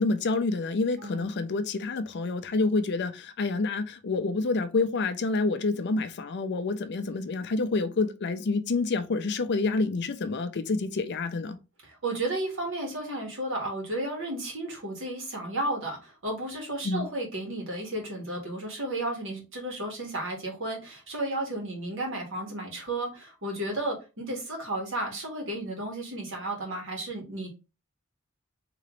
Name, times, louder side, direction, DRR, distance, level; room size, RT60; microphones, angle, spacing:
voice 1, 0.0-11.6 16.8-17.1, left 3 dB, 50° left, 0.5 m, -28 dB
voice 2, 11.8-27.5, right 1 dB, 60° right, 1.6 m, -33 dB
3.8 x 2.9 x 3.0 m
head